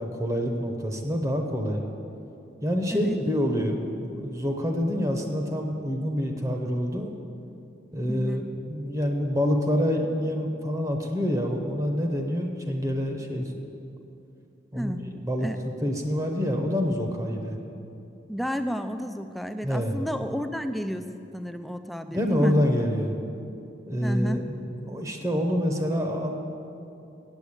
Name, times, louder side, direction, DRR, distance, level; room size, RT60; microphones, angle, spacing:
voice 1, 0.0-1.8 2.6-7.1 7.9-8.4 8.7-13.7 14.7-15.5 15.8-17.6 19.6-20.0 22.1-23.2 23.9-26.4, equal, 20° right, 2 dB, 0.8 m, -27 dB
voice 2, 8.1-8.4 14.8-15.0 15.4-15.6 18.3-21.0 21.3-22.6 24.0-24.4, equal, ahead, 8 dB, 0.3 m, -31 dB
8.1 x 8.1 x 8.5 m, 2.7 s
head